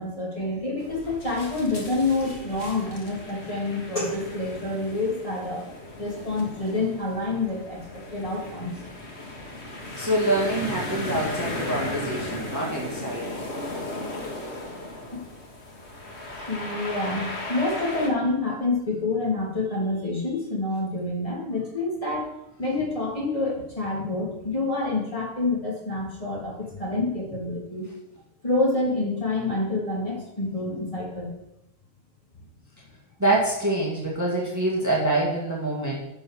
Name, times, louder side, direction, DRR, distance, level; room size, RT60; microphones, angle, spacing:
voice 1, 0.0-5.6 6.0-7.8 8.1-8.7 15.1-15.2 16.5-22.3 22.6-27.9 28.4-31.3, left 2 dB, 25° left, -4 dB, 2.7 m, -27 dB
sound 1, 0.8-18.1, left 2 dB, 55° left, 1.9 m, -36 dB
voice 2, 10.0-13.4 33.2-36.0, right 1 dB, 15° right, -4 dB, 1.9 m, -25 dB
10.0 x 5.4 x 6.2 m, 0.89 s
omnidirectional pair, 1.3 m